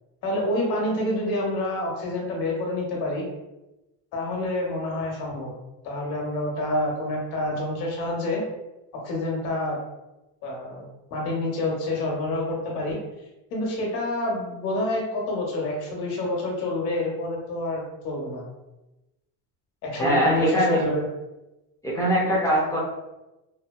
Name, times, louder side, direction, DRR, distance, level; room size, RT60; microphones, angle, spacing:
voice 1, 0.2-3.2 4.1-5.5 5.8-8.4 9.0-9.8 10.4-13.0 13.5-18.4 19.8-21.1, left 1 dB, 60° left, -1 dB, 1.0 m, -28 dB
voice 2, 19.9-20.8 21.8-22.8, equal, 10° left, -6 dB, 0.5 m, -22 dB
2.8 x 2.2 x 2.2 m, 0.99 s
cardioid pair, 140°, 43 cm